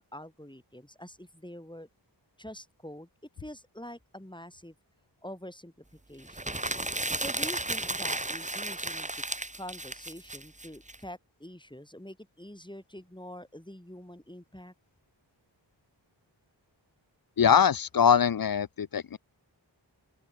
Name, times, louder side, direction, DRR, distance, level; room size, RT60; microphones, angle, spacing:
voice 1, 0.0-1.9 2.4-3.1 3.4-4.8 5.2-5.7 6.1-6.6 7.2-9.1 9.6-14.7, left 1 dB, 10° left, 7.0 m, -45 dB
sound 1, 6.3-11.0, right 2 dB, 15° right, 1.2 m, -33 dB
voice 2, 17.4-19.2, left 7 dB, 50° left, 0.5 m, -23 dB
open air
wide cardioid pair, 50°, 45 cm